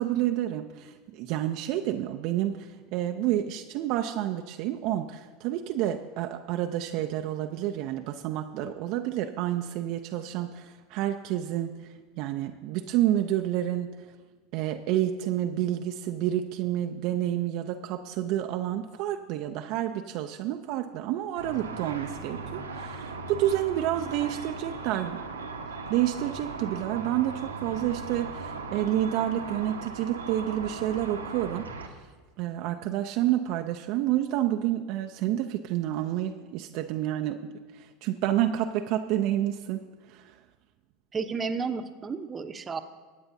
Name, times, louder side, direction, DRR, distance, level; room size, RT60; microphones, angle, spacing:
voice 1, 0.0-11.7 12.2-13.9 14.5-25.2 25.9-31.7 32.4-37.4 37.7-40.2, right 12 dB, 55° right, 5 dB, 0.5 m, -29 dB
Car / Traffic noise roadway noise / Engine, 21.4-31.9, right 4 dB, 90° right, 1.0 m, -38 dB
voice 2, 41.1-42.8, right 5 dB, 25° right, 9 dB, 0.8 m, -32 dB
21.5 x 8.7 x 2.7 m, 1.4 s
hypercardioid pair, 80°, 0 cm